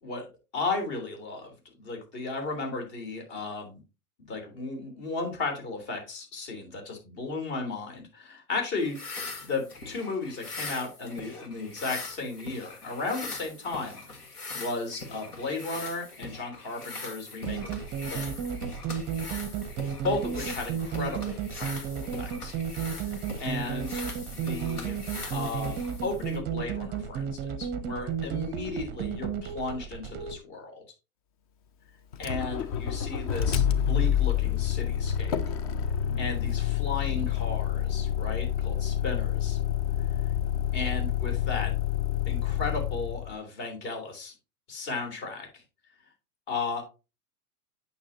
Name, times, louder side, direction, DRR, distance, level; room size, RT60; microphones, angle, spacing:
voice 1, 0.5-3.8 4.3-9.0 9.4-14.2 14.5-17.7 18.1-18.5 20.0-22.5 23.4-25.0 25.3-30.8 32.2-35.4 36.2-39.6 40.7-41.7 42.3-44.3 44.7-45.6 46.5-46.8, left 3 dB, 45° left, 3 dB, 3.5 m, -35 dB
sound 1, 8.8-26.4, left 3 dB, 80° left, 1.8 m, -41 dB
sound 2, 17.5-30.4, right 7 dB, 20° right, 0.6 m, -33 dB
Motor vehicle (road), 32.1-43.3, left 9 dB, 25° left, 0.4 m, -28 dB
8.7 x 6.0 x 2.8 m, 0.29 s
figure-of-eight pair, 105°, 45 cm